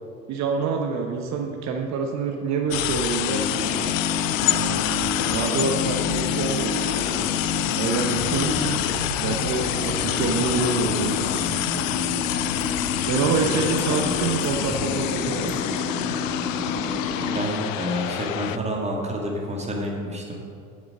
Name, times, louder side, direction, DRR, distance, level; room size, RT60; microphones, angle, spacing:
voice 1, 0.3-3.6 4.4-4.8 5.2-6.8 7.8-8.8 9.2-11.3 13.0-15.5, right 5 dB, 40° right, 2 dB, 1.0 m, -26 dB
sound 1, 2.7-18.6, left 13 dB, 65° left, 0.5 m, -27 dB
sound 2, 3.3-17.5, left 4 dB, 45° left, 1.3 m, -29 dB
voice 2, 17.3-20.4, equal, 15° right, -1 dB, 2.1 m, -29 dB
9.6 x 7.2 x 5.3 m, 2.3 s
figure-of-eight pair, 70°, 42 cm